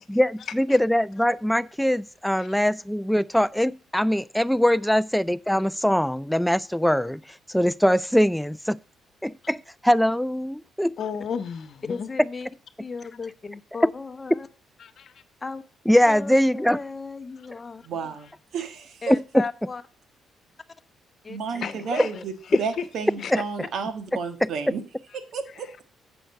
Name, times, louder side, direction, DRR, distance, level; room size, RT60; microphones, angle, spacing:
voice 1, 0.1-7.2 7.5-8.8 9.2-10.9 15.9-16.8 19.1-19.2 21.9-22.1 23.3-23.4 24.4-24.5, equal, 5° left, 0.4 m, -22 dB
voice 2, 11.0-12.1 14.8-15.1 21.6-22.1 23.2-23.3 25.5-25.8, left 7 dB, 60° left, 1.0 m, -34 dB
voice 3, 11.9-12.5 12.8-14.5 15.4-15.6 16.0-18.2 19.0-19.8 21.2-21.9 22.1-22.2 22.5-22.6 23.3-23.4, left 4 dB, 30° left, 0.7 m, -36 dB
voice 4, 17.8-19.1 21.3-22.3 22.6-24.8 25.3-25.8, right 5 dB, 65° right, 1.5 m, -32 dB
7.8 x 5.6 x 6.4 m
cardioid pair, 90°, 0 cm